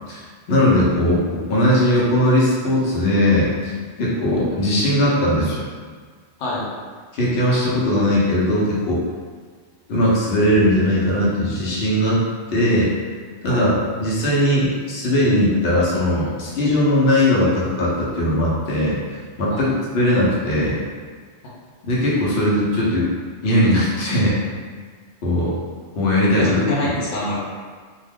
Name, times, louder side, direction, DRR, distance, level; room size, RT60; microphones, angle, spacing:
voice 1, 0.5-3.7 4.0-5.6 7.1-9.0 9.9-12.2 12.5-13.1 13.4-13.7 14.0-19.0 19.4-20.8 21.8-23.1 23.4-24.4 25.2-25.5 26.0-26.6, left 1 dB, 65° left, -6 dB, 0.9 m, -19 dB
voice 2, 26.2-27.3, left 1 dB, 90° left, -6 dB, 1.0 m, -25 dB
2.4 x 2.2 x 3.3 m, 1.6 s
omnidirectional pair, 1.2 m